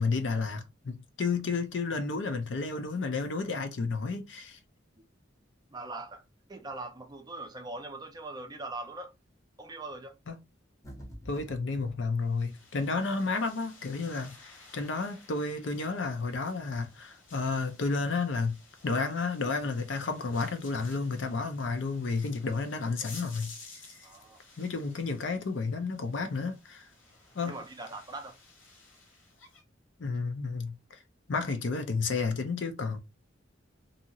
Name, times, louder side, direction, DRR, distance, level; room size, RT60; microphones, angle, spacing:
voice 1, 0.0-4.6 10.3-10.4 11.3-18.5 18.8-23.5 24.6-26.9 27.4-27.5 30.0-31.0 31.3-33.0, left 4 dB, 65° left, 0.5 m, -31 dB
voice 2, 5.7-6.2 6.5-9.1 9.6-10.2 24.0-24.4 27.4-28.4, right 2 dB, 20° right, 0.5 m, -41 dB
sound 1, 10.8-12.0, equal, 15° left, 0.8 m, -46 dB
sound 2, 12.2-29.6, left 3 dB, 80° left, 1.0 m, -54 dB
2.7 x 2.4 x 2.8 m
head